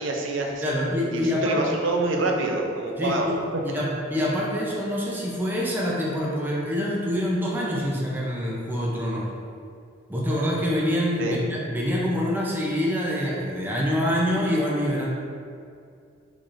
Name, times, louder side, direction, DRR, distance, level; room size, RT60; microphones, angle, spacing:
voice 1, 0.0-0.7 1.1-3.3 11.2-11.4, right 2 dB, 70° right, 1 dB, 0.6 m, -26 dB
voice 2, 0.6-1.6 3.0-3.4 3.6-9.3 10.1-15.1, equal, 10° right, -5 dB, 0.5 m, -26 dB
4.6 x 4.0 x 2.5 m, 2.3 s
head